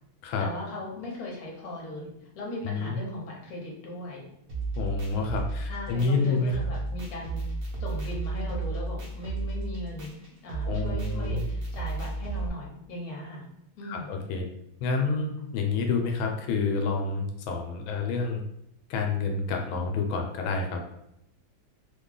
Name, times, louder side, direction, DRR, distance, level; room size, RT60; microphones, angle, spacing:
voice 1, 0.4-2.1 2.3-4.3 5.7-7.4 7.8-10.1 10.4-13.4 13.7-14.2, left 1 dB, 55° left, -2 dB, 1.3 m, -38 dB
voice 2, 2.6-3.0 4.8-6.6 10.6-11.4 13.8-14.4 14.8-18.4 18.9-20.9, left 4 dB, 90° left, 3 dB, 1.4 m, -28 dB
sound 1, 4.5-12.5, right 3 dB, 60° right, 1.0 m, -33 dB
3.2 x 2.3 x 3.7 m, 0.78 s
omnidirectional pair, 2.1 m